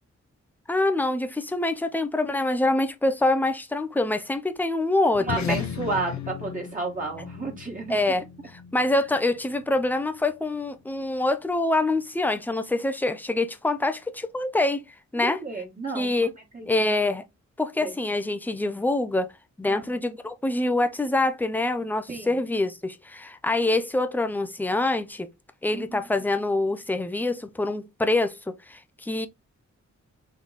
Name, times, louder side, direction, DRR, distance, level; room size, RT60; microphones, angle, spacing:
voice 1, 0.7-5.6 7.9-8.2 8.5-14.8 15.1-15.4 15.9-16.3 16.7-17.2 17.6-19.3 19.6-25.3 25.6-29.3, left 2 dB, 5° left, 0.5 m, -25 dB
sound 1, 5.1-9.9, left 7 dB, 70° left, 0.8 m, -36 dB
voice 2, 5.3-8.0 15.2-16.1 16.5-16.9 17.8-17.9 19.7-19.9 22.1-22.4 25.7-26.1, right 3 dB, 30° right, 1.6 m, -32 dB
3.9 x 3.1 x 4.0 m
wide cardioid pair, 150°, 29 cm